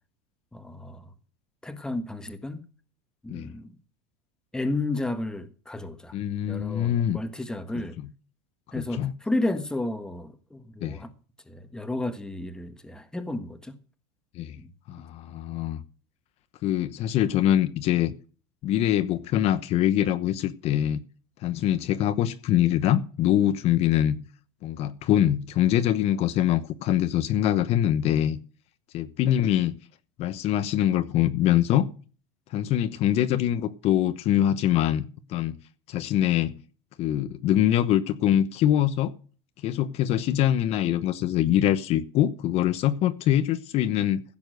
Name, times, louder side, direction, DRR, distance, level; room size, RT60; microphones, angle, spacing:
voice 1, 0.5-1.1 1.6-2.6 3.2-3.8 4.5-6.2 6.4-8.0 8.7-11.1 11.5-13.8 14.5-14.7, left 2 dB, 5° left, 1.5 m, -32 dB
voice 2, 6.1-7.2 8.7-9.1 10.8-11.0 14.3-14.6 14.9-15.8 16.6-18.1 18.6-21.0 21.4-24.2 24.6-28.4 28.9-29.8 30.2-31.9 32.5-35.6 35.9-36.6 37.0-39.1 39.6-44.2, left 11 dB, 45° left, 1.0 m, -24 dB
15.5 x 7.1 x 6.6 m
supercardioid pair, 140°, 15 cm